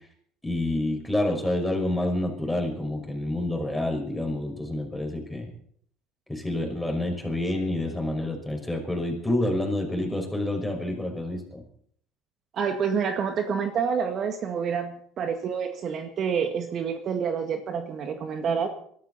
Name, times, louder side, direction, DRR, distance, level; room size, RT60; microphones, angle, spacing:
voice 1, 0.4-5.5 6.3-11.6, left 1 dB, 5° left, 2 dB, 5.8 m, -28 dB
voice 2, 12.5-18.7, right 6 dB, 50° right, 6 dB, 1.9 m, -28 dB
23.0 x 13.0 x 4.2 m, 0.62 s
hypercardioid pair, 70°, 0 cm